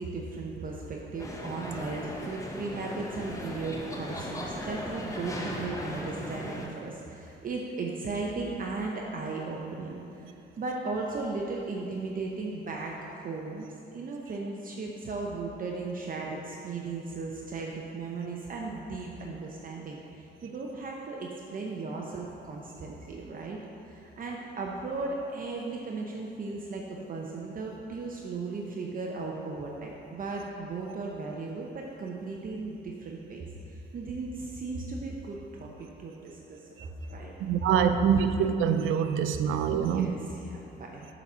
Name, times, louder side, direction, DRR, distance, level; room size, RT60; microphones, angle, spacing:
voice 1, 0.0-10.3 10.6-13.7 13.9-23.6 23.8-37.3 39.7-41.1, right 3 dB, 45° right, -1 dB, 0.7 m, -36 dB
sound 1, 1.2-6.7, left 1 dB, 15° left, 0.9 m, -37 dB
voice 2, 37.4-40.1, right 7 dB, 85° right, 8 dB, 0.4 m, -25 dB
7.1 x 4.1 x 6.0 m, 2.8 s
cardioid pair, 90°, 20 cm